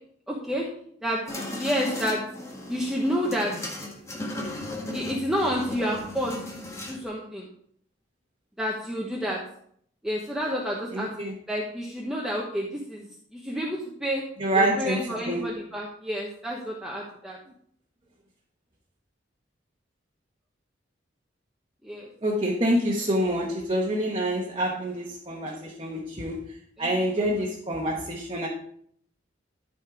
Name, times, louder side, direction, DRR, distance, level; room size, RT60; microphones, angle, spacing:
voice 1, 0.3-0.7 1.0-1.2 1.5-2.2 2.7-3.5 4.9-6.4 6.7-7.5 8.6-9.4 10.0-13.1 13.3-14.2 14.5-17.4 21.8-22.1 26.8-26.9 27.2-27.3, equal, 5° right, -3 dB, 1.1 m, -29 dB
sound 1, 1.3-7.0, left 1 dB, 15° left, 1.3 m, -36 dB
voice 2, 10.9-11.3 14.4-15.0 15.3-15.4 22.2-28.5, right 1 dB, 30° right, -2 dB, 1.2 m, -27 dB
12.5 x 4.3 x 5.0 m, 0.64 s
head